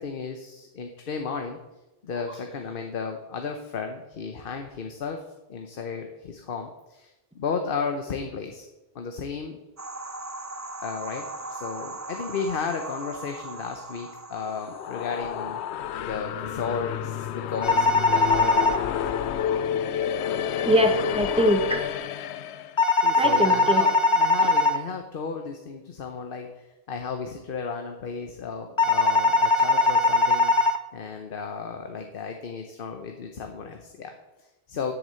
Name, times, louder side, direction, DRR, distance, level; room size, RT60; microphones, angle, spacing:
voice 1, 0.0-1.6 2.0-5.2 5.5-8.7 8.9-9.6 10.8-11.2 11.5-15.6 16.0-18.9 23.0-30.5 30.9-34.9, left 5 dB, 60° left, 5 dB, 1.0 m, -34 dB
sound 1, 9.8-15.5, right 2 dB, 25° right, 0.4 m, -39 dB
sound 2, 14.4-22.8, left 9 dB, 90° left, 0.9 m, -30 dB
sound 3, 17.6-18.8 22.8-24.8 28.8-30.8, left 3 dB, 40° left, 0.5 m, -20 dB
voice 2, 20.6-21.8 23.2-23.8 24.4-24.5, equal, 5° right, 5 dB, 1.0 m, -23 dB
8.2 x 7.0 x 7.5 m, 1.0 s
omnidirectional pair, 1.1 m